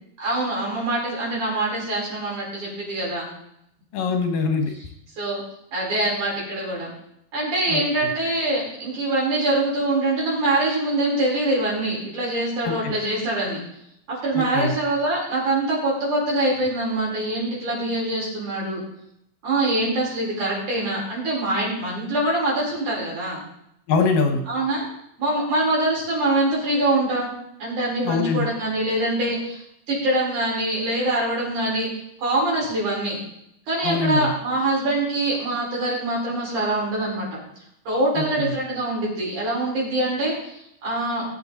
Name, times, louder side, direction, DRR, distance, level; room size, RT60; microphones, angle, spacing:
voice 1, 0.2-3.3 5.2-5.4 5.7-6.9 7.3-13.6 14.1-18.8 19.4-23.4 24.5-24.9 25.2-27.3 27.6-29.6 29.9-31.9 32.2-33.2 33.7-37.4 37.9-41.3, right 2 dB, 65° right, -5 dB, 6.3 m, -24 dB
voice 2, 3.9-4.7 7.7-7.8 12.6-12.9 14.4-14.7 23.9-24.4 28.0-28.5 33.8-34.3 38.4-38.5, left 4 dB, 75° left, 5 dB, 3.1 m, -23 dB
18.5 x 7.5 x 4.2 m, 0.77 s
omnidirectional pair, 3.8 m